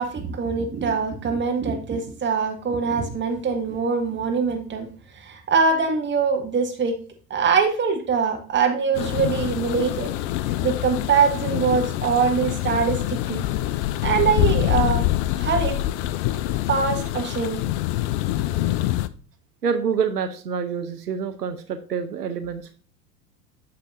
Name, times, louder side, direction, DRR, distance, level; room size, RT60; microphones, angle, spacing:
voice 1, 0.0-4.9 5.2-7.0 7.3-10.1 10.6-13.4 14.0-15.1 15.4-15.8 16.7-17.6, right 5 dB, 25° right, 4 dB, 1.7 m, -23 dB
sound 1, 8.9-19.1, left 14 dB, 50° left, 0.5 m, -25 dB
voice 2, 19.6-22.7, right 6 dB, 90° right, 10 dB, 0.8 m, -27 dB
9.5 x 6.7 x 2.6 m, 0.41 s
figure-of-eight pair, 85°, 46 cm